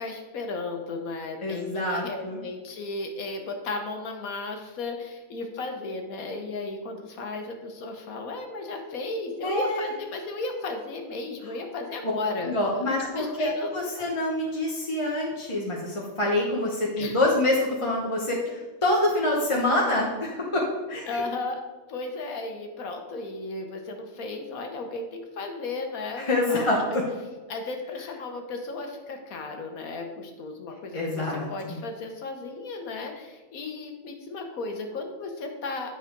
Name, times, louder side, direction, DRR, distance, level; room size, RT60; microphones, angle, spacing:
voice 1, 0.0-14.1 17.0-17.2 18.4-18.5 21.1-21.6 21.9-27.0 27.5-35.9, left 3 dB, 90° left, 4 dB, 1.5 m, -35 dB
voice 2, 1.4-2.4 9.4-9.9 12.5-18.4 18.8-21.2 26.3-26.8 30.9-31.8, left 1 dB, 25° left, -3 dB, 0.9 m, -26 dB
8.4 x 4.9 x 4.6 m, 1.3 s
omnidirectional pair, 1.4 m